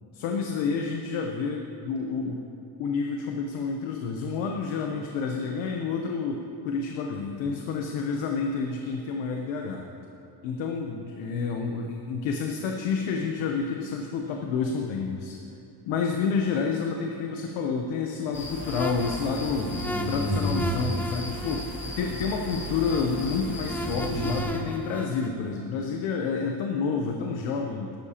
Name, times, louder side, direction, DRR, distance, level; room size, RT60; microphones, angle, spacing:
voice 1, 0.1-2.5 2.8-9.9 10.4-15.4 15.8-19.7 20.1-27.9, left 5 dB, 85° left, 2 dB, 0.9 m, -29 dB
sound 1, 18.3-24.4, equal, 25° left, 1.6 m, -32 dB
sound 2, 18.6-25.3, right 1 dB, 5° left, 0.5 m, -37 dB
13.0 x 12.0 x 2.9 m, 2.8 s
cardioid pair, 135°, 45 cm